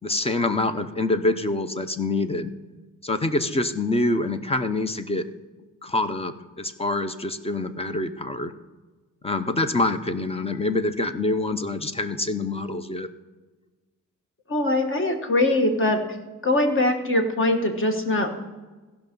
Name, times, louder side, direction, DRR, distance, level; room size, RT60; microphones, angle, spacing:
voice 1, 0.0-2.5 3.0-5.2 5.8-8.5 9.2-13.1, left 2 dB, 20° left, 10 dB, 0.6 m, -26 dB
voice 2, 14.5-16.0 16.4-18.4, left 1 dB, 40° left, 5 dB, 1.5 m, -22 dB
15.5 x 5.7 x 5.3 m, 1.3 s
wide cardioid pair, 130°, 32 cm